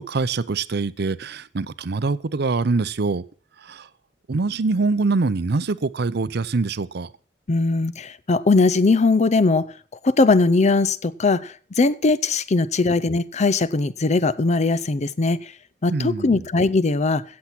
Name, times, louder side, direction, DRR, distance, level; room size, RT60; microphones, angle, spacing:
voice 1, 0.0-3.2 3.6-3.9 4.3-7.1 15.9-16.5, right 3 dB, 60° right, 17 dB, 0.6 m, -24 dB
voice 2, 7.5-9.7 10.0-15.4 15.8-17.2, left 3 dB, 40° left, 17 dB, 0.5 m, -20 dB
16.5 x 7.3 x 6.0 m, 0.40 s
head